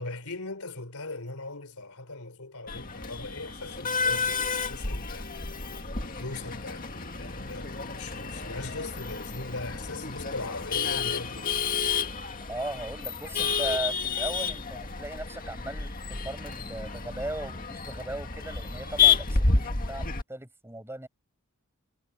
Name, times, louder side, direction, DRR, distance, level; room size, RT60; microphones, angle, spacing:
voice 1, 0.0-5.3 6.0-11.6, left 2 dB, 80° left, 3.8 m, -39 dB
Male speech man speaking / Laughter / Chatter, 2.7-20.2, left 5 dB, 40° left, 2.0 m, -30 dB
voice 2, 12.5-21.1, right 1 dB, 10° right, 5.5 m, -37 dB
head